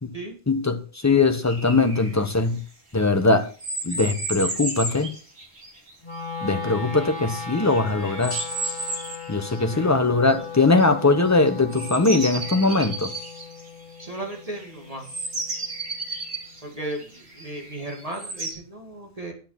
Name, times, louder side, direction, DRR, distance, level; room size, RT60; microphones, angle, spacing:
voice 1, 0.5-2.6 2.9-3.5 3.8-5.1 6.4-8.4 9.3-13.1, left 3 dB, 15° left, 8 dB, 1.2 m, -21 dB
sound 1, 1.4-2.2 3.6-6.1 6.6-9.6 10.3-10.8 11.3-14.6 15.0-18.5, right 2 dB, 80° right, 3.0 m, -33 dB
Wind instrument woodwind instrument, 6.0-16.2, left 5 dB, 45° left, 1.7 m, -37 dB
voice 2, 14.0-15.1 16.6-19.3, right 1 dB, 35° right, 1 dB, 2.5 m, -35 dB
9.9 x 8.8 x 5.8 m, 0.36 s
omnidirectional pair, 1.1 m